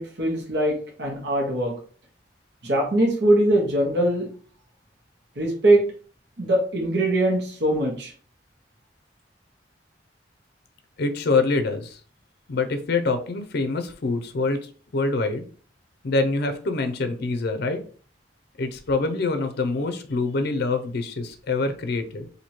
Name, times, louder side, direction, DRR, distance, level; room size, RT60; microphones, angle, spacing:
voice 1, 0.0-1.7 2.6-4.3 5.4-5.9 6.4-8.1, right 1 dB, 65° right, 0 dB, 1.2 m, -22 dB
voice 2, 11.0-12.0 12.5-15.5 16.0-17.8 18.6-22.3, left 3 dB, 60° left, 7 dB, 0.5 m, -25 dB
2.9 x 2.7 x 4.3 m, 0.43 s
head